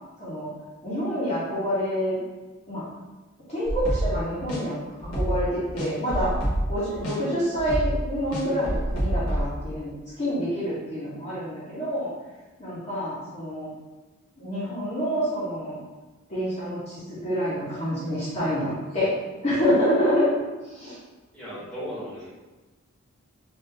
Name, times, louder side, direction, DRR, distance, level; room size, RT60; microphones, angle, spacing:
voice 1, 0.8-2.2 2.7-2.9 3.5-4.8 5.1-6.3 6.7-9.9 10.2-12.1 12.6-13.7 14.4-15.8 16.3-19.1 19.4-20.3 20.6-21.0, equal, 30° left, -10 dB, 0.9 m, -27 dB
sound 1, 3.6-4.2 4.5-4.6 5.0-5.5 5.8-6.7 7.0-7.1 7.5-9.4, right 1 dB, 85° left, 0.9 m, -27 dB
voice 2, 21.3-22.3, equal, 5° left, -10 dB, 1.1 m, -37 dB
3.6 x 2.6 x 2.7 m, 1.2 s
head